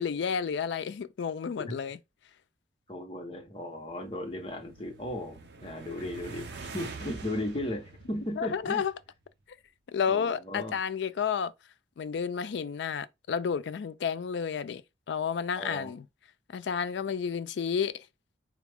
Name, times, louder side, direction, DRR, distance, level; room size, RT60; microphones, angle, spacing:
voice 1, 0.0-2.0 8.4-8.9 9.9-11.5 12.0-14.8 15.1-16.0 16.5-18.0, left 6 dB, 75° left, 0.4 m, -31 dB
voice 2, 2.9-6.5 6.7-8.8 10.1-10.7 15.5-15.9, left 1 dB, 30° left, 0.9 m, -36 dB
sound 1, 3.6-9.1, right 4 dB, 65° right, 0.6 m, -46 dB
4.2 x 2.4 x 3.4 m
head